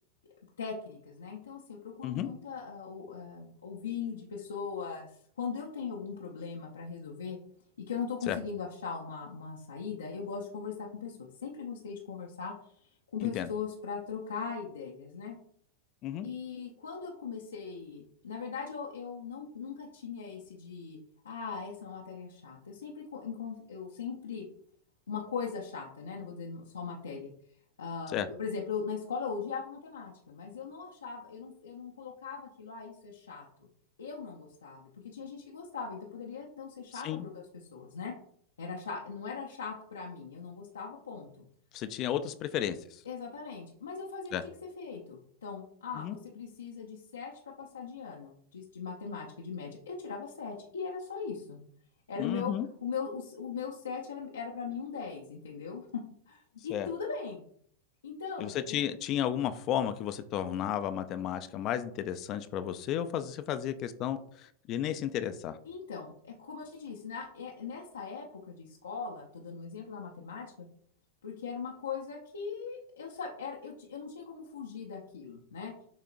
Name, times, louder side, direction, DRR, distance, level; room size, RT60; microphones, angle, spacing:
voice 1, 0.6-7.4 7.9-15.4 16.2-21.0 21.2-24.5 25.1-27.3 27.8-33.7 34.0-38.1 38.6-41.4 43.0-44.3 44.8-47.3 47.6-51.6 52.1-52.5 52.8-55.8 56.3-57.4 58.0-58.8 65.6-70.7 71.2-75.7, left 6 dB, 90° left, -2 dB, 0.7 m, -40 dB
voice 2, 41.7-43.0 44.3-44.4 46.0-46.2 52.2-52.7 56.7-56.9 58.4-65.6, left 10 dB, 45° left, 11 dB, 0.4 m, -33 dB
6.9 x 2.8 x 2.5 m, 0.64 s
hypercardioid pair, 100°, 0 cm